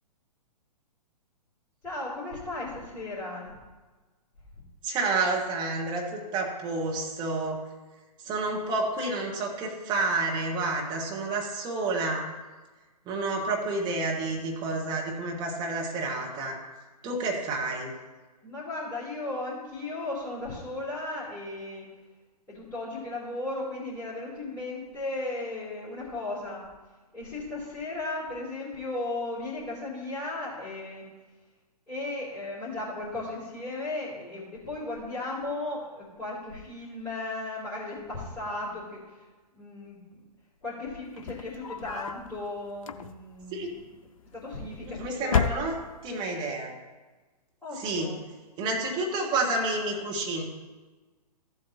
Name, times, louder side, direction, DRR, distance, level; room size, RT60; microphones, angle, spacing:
voice 1, 1.8-3.5 18.4-21.8 22.5-26.6 27.1-31.0 31.9-39.0 39.5-40.0 40.6-43.8 44.3-45.7 47.6-48.2, left 2 dB, 10° left, -12 dB, 3.0 m, -36 dB
voice 2, 4.8-7.6 8.2-12.3 13.1-16.6 17.0-17.9 43.5-43.7 44.8-45.7 46.0-46.7 47.7-48.1 48.6-50.4, right 3 dB, 20° right, -1 dB, 1.6 m, -29 dB
sound 1, 41.1-42.3 42.8-43.4 44.4-44.9 45.2-46.2, left 6 dB, 55° left, 0.5 m, -30 dB
14.0 x 7.8 x 2.9 m, 1.3 s
figure-of-eight pair, 120°, 21 cm